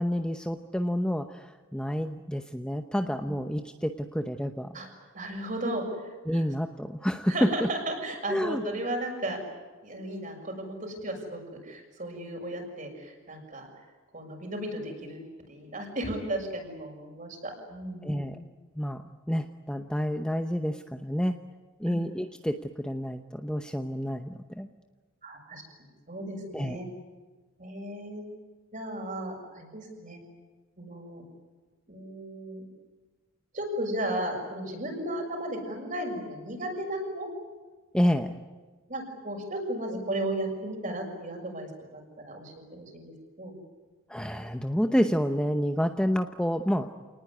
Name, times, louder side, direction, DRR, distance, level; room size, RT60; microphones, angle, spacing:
voice 1, 0.0-4.8 6.3-7.7 8.3-8.6 18.0-18.4 18.8-21.4 21.8-24.7 26.5-26.8 37.9-38.4 44.1-46.9, equal, 5° left, 6 dB, 0.8 m, -29 dB
voice 2, 5.1-6.4 7.3-9.4 9.8-13.7 14.1-18.3 21.9-22.0 25.2-26.8 27.6-28.2 28.7-30.2 30.8-31.2 31.9-32.6 33.5-37.3 38.9-43.6, right 1 dB, 40° right, 2 dB, 6.6 m, -35 dB
28.5 x 19.5 x 9.7 m, 1.3 s
head